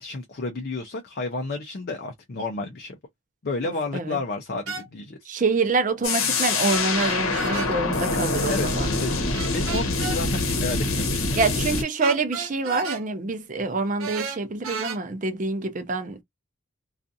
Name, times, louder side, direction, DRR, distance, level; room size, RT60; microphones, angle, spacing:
voice 1, 0.0-3.0 3.4-5.3 8.5-11.6, left 3 dB, 50° left, 0.5 m, -32 dB
voice 2, 3.6-4.2 5.3-8.9 11.4-16.2, right 3 dB, 40° right, 0.5 m, -26 dB
sound 1, 4.7-4.9 6.7-7.7 9.3-10.2 12.0-13.0 14.0-15.0, right 4 dB, 85° right, 0.9 m, -33 dB
sound 2, 6.0-11.8, left 3 dB, 85° left, 0.8 m, -25 dB
2.5 x 2.4 x 2.5 m
head